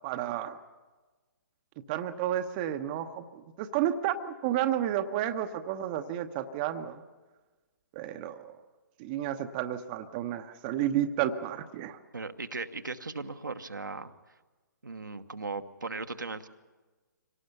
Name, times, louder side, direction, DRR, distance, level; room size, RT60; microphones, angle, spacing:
voice 1, 0.0-0.6 1.9-7.0 7.9-8.5 9.0-12.0, right 11 dB, 25° right, 8 dB, 0.9 m, -31 dB
voice 2, 12.1-14.1 14.8-16.5, right 3 dB, 75° right, 7 dB, 1.2 m, -37 dB
24.5 x 18.0 x 7.0 m, 1.3 s
figure-of-eight pair, 130°, 10 cm